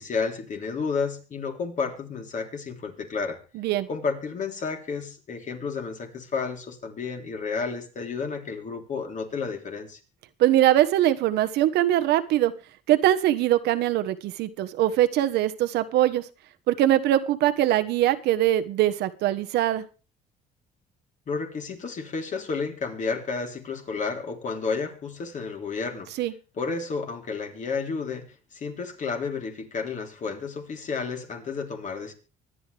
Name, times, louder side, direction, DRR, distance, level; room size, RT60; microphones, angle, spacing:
voice 1, 0.0-3.4 3.9-10.0 21.3-26.1 26.6-32.1, left 5 dB, 45° left, 3.7 m, -31 dB
voice 2, 3.5-3.9 10.4-12.5 12.9-16.3 16.7-19.8 26.2-26.3, right 13 dB, 80° right, 1.3 m, -22 dB
24.5 x 9.4 x 3.5 m
cardioid pair, 110°, 17 cm